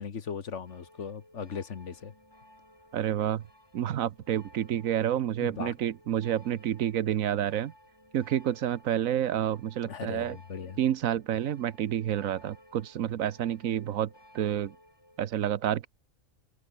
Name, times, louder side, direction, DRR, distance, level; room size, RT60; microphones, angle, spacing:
voice 1, 0.0-2.1 5.4-5.7 9.8-10.8, left 6 dB, 60° left, 1.6 m, -38 dB
sound 1, 0.7-15.3, left 1 dB, 20° left, 5.1 m, -58 dB
voice 2, 2.9-3.4 3.7-7.7 8.1-10.4 10.8-14.7 15.2-15.9, right 10 dB, 80° right, 1.2 m, -29 dB
omnidirectional pair, 1.4 m